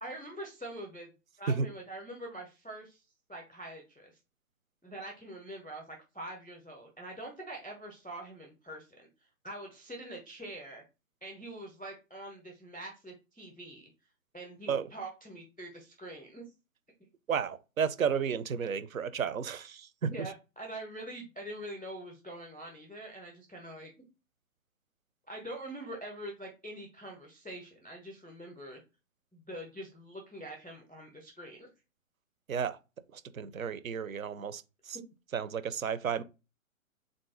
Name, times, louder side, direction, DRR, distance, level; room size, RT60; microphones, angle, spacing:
voice 1, 0.0-3.0 3.3-4.2 4.8-9.1 9.4-10.8 11.2-13.9 14.3-16.4 20.1-24.0 25.3-28.8 29.3-31.7 34.9-35.0, right 1 dB, 5° left, 0.3 m, -44 dB
voice 2, 17.3-20.3 32.5-32.8 33.1-35.0 35.3-36.2, right 6 dB, 75° right, 0.6 m, -32 dB
3.7 x 2.6 x 3.7 m
figure-of-eight pair, 120°, 41 cm